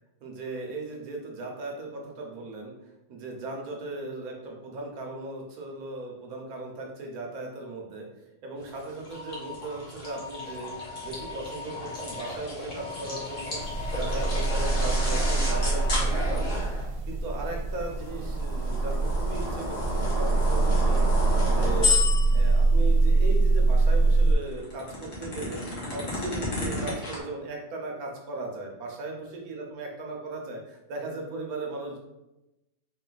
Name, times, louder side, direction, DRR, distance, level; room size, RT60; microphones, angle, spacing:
voice 1, 0.2-2.7 3.1-8.1 8.4-10.7 11.0-16.7 17.1-21.1 21.5-22.0 22.3-25.6 25.9-32.0, right 2 dB, 60° right, 0 dB, 1.3 m, -37 dB
sound 1, 8.7-16.9 17.8-22.6 24.3-27.2, left 2 dB, 50° left, 1.4 m, -32 dB
sound 2, 9.1-9.6 10.0-12.3 12.8-16.0, left 5 dB, 80° left, 1.4 m, -41 dB
sound 3, 13.6-24.3, right 3 dB, 85° right, 1.2 m, -24 dB
4.0 x 2.6 x 3.9 m, 0.95 s
omnidirectional pair, 1.8 m